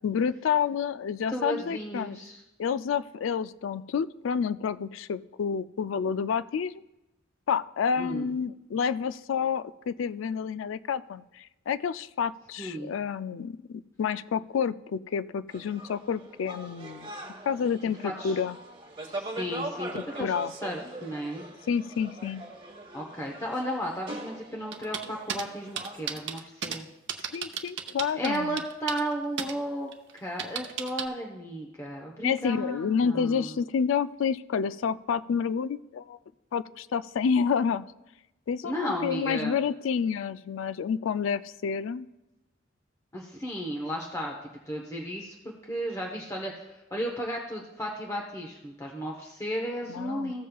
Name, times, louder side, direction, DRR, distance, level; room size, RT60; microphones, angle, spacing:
voice 1, 0.0-2.2 2.6-6.7 7.5-17.1 17.5-18.6 19.9-20.5 21.7-22.4 27.3-28.6 32.2-36.2 36.5-37.9 38.5-42.1 49.9-50.3, left 6 dB, 70° left, 16 dB, 0.3 m, -29 dB
voice 2, 1.3-2.4 8.0-8.3 12.6-12.9 18.0-18.4 19.0-21.4 22.9-26.9 28.2-33.6 38.6-39.6 43.1-44.4 44.7-45.3 45.6-50.5, equal, 15° left, -1 dB, 0.9 m, -34 dB
sound 1, 15.5-26.2, right 2 dB, 25° right, 1.4 m, -41 dB
sound 2, 24.7-25.4 25.8-26.8 27.1-29.1 29.4-29.5 29.9-31.0, right 8 dB, 65° right, 0.7 m, -33 dB
15.0 x 7.3 x 2.3 m, 0.98 s
head